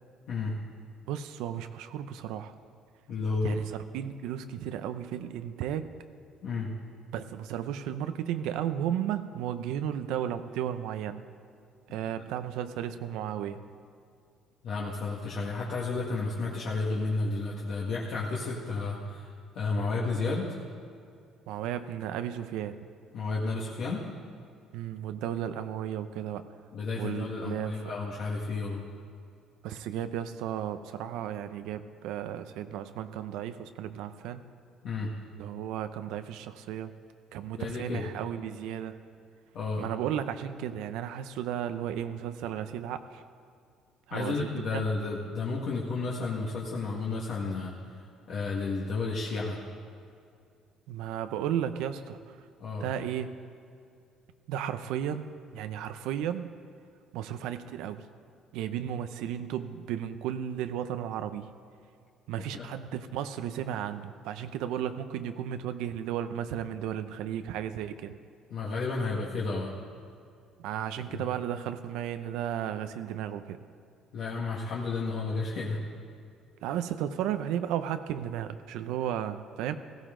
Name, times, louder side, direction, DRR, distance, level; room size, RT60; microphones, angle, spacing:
voice 1, 1.1-2.5 3.4-5.9 7.1-11.2 11.9-13.6 21.5-22.8 24.7-26.5 27.0-27.8 29.6-34.5 35.4-36.9 37.3-39.0 39.8-43.2 44.1-44.8 50.9-52.4 52.8-53.4 54.5-56.5 57.1-58.0 58.5-61.5 62.3-68.2 70.6-73.6 76.6-79.7, right 10 dB, 85° right, 10 dB, 0.6 m, -34 dB
voice 2, 3.1-3.5 6.4-6.7 14.6-20.6 23.1-24.0 26.7-28.8 34.8-35.1 37.6-38.1 39.5-39.9 44.1-47.7 48.3-49.6 52.6-52.9 62.5-62.7 68.5-69.7 71.1-71.2 74.1-75.8, left 3 dB, 60° left, -5 dB, 1.7 m, -32 dB
16.0 x 16.0 x 3.8 m, 2.4 s
cardioid pair, 140°, 0 cm